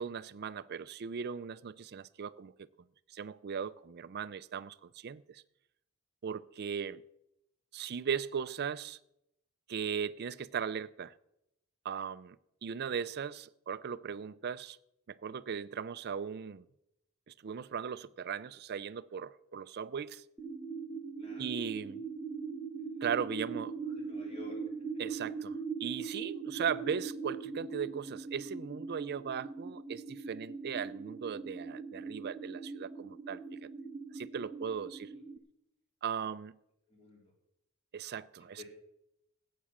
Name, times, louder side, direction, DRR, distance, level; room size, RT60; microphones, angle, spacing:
voice 1, 0.0-2.7 3.1-5.4 6.2-7.0 7.7-9.0 9.7-11.1 11.8-12.4 12.6-14.8 15.1-16.6 17.3-20.2 21.4-22.0 23.0-23.7 25.0-33.7 34.1-35.1 36.0-36.5 37.9-38.6, right 7 dB, 45° right, 0.4 m, -38 dB
sound 1, 20.4-35.4, right 5 dB, 5° right, 0.9 m, -41 dB
voice 2, 21.2-21.6 23.9-24.6 35.1-35.2 36.9-37.3 38.6-38.7, left 4 dB, 25° left, 3.3 m, -52 dB
15.0 x 8.4 x 7.3 m
head